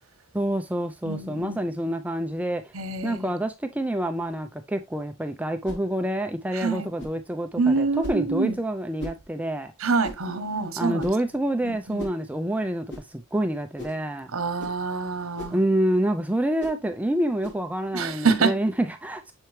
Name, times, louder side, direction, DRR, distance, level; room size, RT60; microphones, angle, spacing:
voice 1, 0.3-2.6 3.0-9.7 10.8-14.3 14.9-15.0 15.5-19.3, right 1 dB, 5° right, 0.4 m, -27 dB
voice 2, 1.0-1.6 2.7-3.3 6.6-6.9 7.6-8.5 9.8-11.0 11.6-12.0 14.3-15.6 17.9-18.6, right 4 dB, 75° right, 1.0 m, -26 dB
sound 1, 5.6-5.9 7.0-7.2 8.0-8.3 9.0-9.2 10.0-10.3 11.0-11.3 12.0-12.2 12.9-13.1 13.8-14.0 14.6-14.8 15.4-15.6 16.6-16.8 17.4-17.6, left 1 dB, 55° left, 2.5 m, -38 dB
6.8 x 4.4 x 3.1 m
head